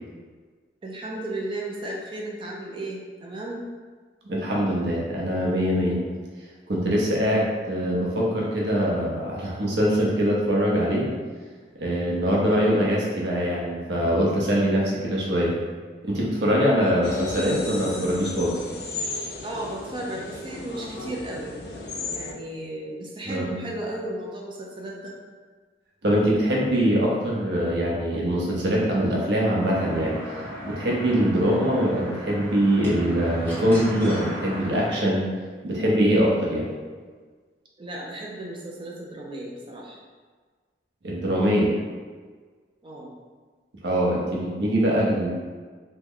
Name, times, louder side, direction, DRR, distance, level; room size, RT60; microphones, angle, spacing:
voice 1, 0.8-3.6 16.8-17.0 19.4-21.6 22.1-25.1 37.8-40.0 42.8-43.1, right 1 dB, 25° right, -2 dB, 0.3 m, -34 dB
voice 2, 4.3-6.0 6.7-11.1 11.7-15.6 16.0-18.6 23.3-23.6 26.0-30.2 30.6-35.3 35.6-36.7 41.0-41.7 43.8-45.3, equal, 75° right, -4 dB, 0.7 m, -23 dB
sound 1, 17.0-22.3, left 2 dB, 65° left, 0.4 m, -34 dB
sound 2, 29.6-34.9, equal, 10° left, 0.9 m, -36 dB
3.0 x 2.1 x 3.6 m, 1.5 s
head